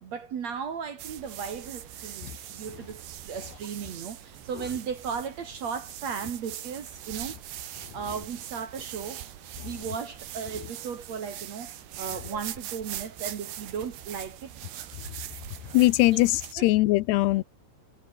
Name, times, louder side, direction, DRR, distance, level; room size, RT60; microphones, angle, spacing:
voice 1, 0.0-7.4 7.9-9.2 9.6-14.5 16.6-16.7, right 6 dB, 50° right, 2.4 m, -36 dB
sound 1, 1.0-16.6, right 12 dB, 80° right, 4.1 m, -41 dB
voice 2, 15.7-17.4, left 18 dB, 80° left, 2.8 m, -21 dB
omnidirectional pair, 4.8 m